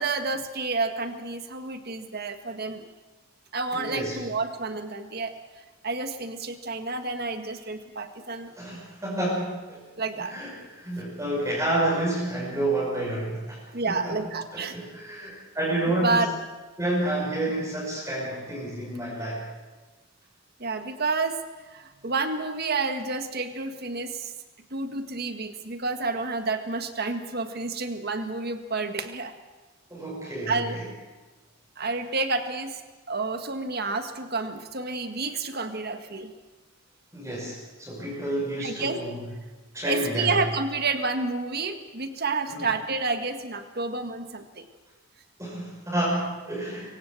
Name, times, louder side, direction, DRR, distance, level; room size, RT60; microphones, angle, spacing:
voice 1, 0.0-2.9 3.5-5.3 5.8-8.5 10.0-10.3 13.7-14.8 16.0-16.3 20.6-21.4 21.7-24.3 24.7-29.3 30.5-30.8 31.8-32.8 33.1-36.3 38.6-39.0 39.8-44.7, right 3 dB, 50° right, 7 dB, 1.8 m, -29 dB
voice 2, 3.7-4.2 8.6-9.8 10.3-14.3 14.5-16.3 16.8-19.4 29.9-30.9 37.1-39.2 39.7-40.3 42.5-42.7 45.4-46.8, right 1 dB, 15° right, -5 dB, 5.9 m, -29 dB
24.5 x 16.5 x 7.7 m, 1.3 s
head